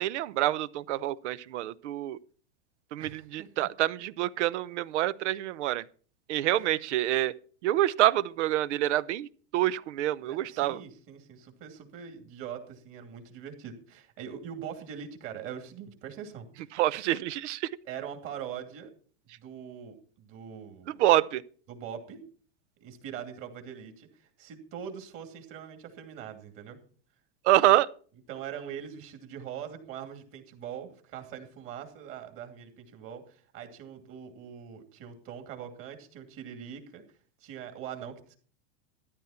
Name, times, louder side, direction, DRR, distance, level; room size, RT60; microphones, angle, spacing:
voice 1, 0.0-2.2 2.9-5.8 6.3-7.3 7.6-10.8 16.7-17.7 21.0-21.4 27.4-27.9, right 14 dB, 80° right, 0.8 m, -26 dB
voice 2, 3.0-3.7 6.6-6.7 10.2-16.7 17.8-18.9 19.4-20.9 21.7-22.2 22.8-26.8 28.3-37.0 37.4-38.4, right 8 dB, 40° right, 2.7 m, -42 dB
13.5 x 11.5 x 4.3 m
supercardioid pair, 155°, 35 cm